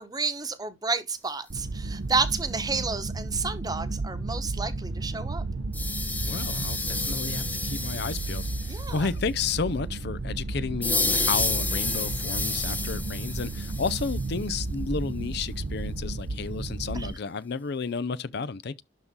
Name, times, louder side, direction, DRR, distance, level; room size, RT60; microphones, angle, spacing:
voice 1, 0.0-5.4 8.7-9.1 16.9-17.1, right 4 dB, 20° right, 1.1 m, -30 dB
sound 1, 1.5-17.1, right 2 dB, 75° right, 0.8 m, -33 dB
sound 2, 4.3-11.8, right 1 dB, 85° left, 5.9 m, -49 dB
sound 3, 5.7-9.1 10.8-14.3, left 3 dB, 10° left, 0.9 m, -30 dB
voice 2, 6.2-18.8, left 5 dB, 60° left, 0.5 m, -32 dB
12.0 x 4.0 x 3.6 m
head